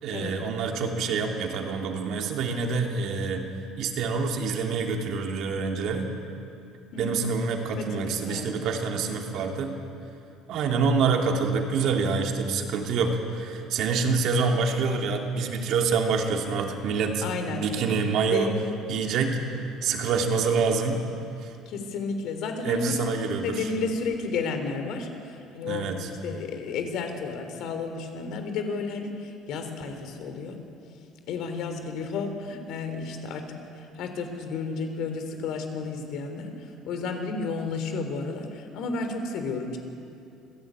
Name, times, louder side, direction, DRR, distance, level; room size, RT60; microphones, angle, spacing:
voice 1, 0.0-3.5 3.7-6.1 7.0-9.7 10.5-17.2 17.5-18.5 18.9-21.0 21.4-21.5 22.6-23.7 25.6-26.1, right 5 dB, 60° right, 2 dB, 3.0 m, -26 dB
voice 2, 7.8-8.6 10.7-10.8 17.2-17.6 18.3-18.5 21.7-25.9 26.2-30.6 31.3-39.8, left 4 dB, 65° left, 6 dB, 3.5 m, -32 dB
25.5 x 16.5 x 9.0 m, 2.6 s
cardioid pair, 135°, 0 cm